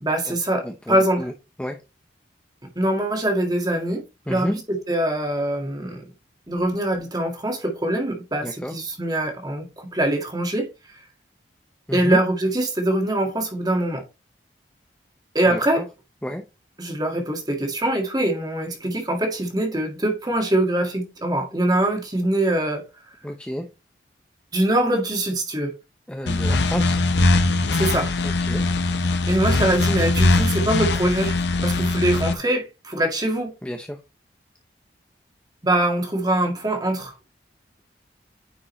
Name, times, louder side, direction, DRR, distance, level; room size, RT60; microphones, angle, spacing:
voice 1, 0.0-1.2 2.8-4.0 4.3-6.0 6.5-10.7 11.9-14.0 15.3-15.8 16.8-22.8 24.5-25.7 27.7-28.1 29.3-31.4 31.6-33.5 35.6-37.1, right 1 dB, 20° right, 1.9 m, -23 dB
voice 2, 0.6-1.3 1.6-1.8 4.3-4.6 8.4-8.7 11.9-12.2 15.5-15.9 16.2-16.4 23.2-23.7 26.1-27.0 28.2-28.6 33.6-34.0, equal, 5° left, 0.7 m, -30 dB
sound 1, 26.3-32.3, left 2 dB, 75° left, 0.9 m, -21 dB
9.8 x 5.2 x 3.2 m
head